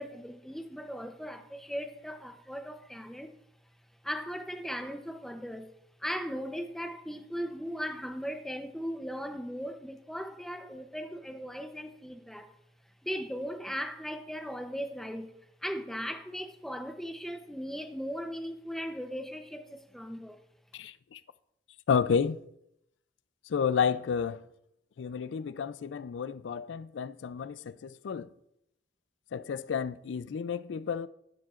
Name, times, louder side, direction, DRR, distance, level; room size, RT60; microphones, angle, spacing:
voice 1, 0.0-3.4 4.0-5.7 6.0-12.5 13.0-15.3 15.6-20.4, equal, ahead, 0.7 m, -38 dB
voice 2, 20.7-21.2 21.9-22.4 23.5-24.4 25.0-28.3 29.3-31.1, left 6 dB, 85° left, 0.4 m, -31 dB
14.0 x 10.5 x 2.5 m
head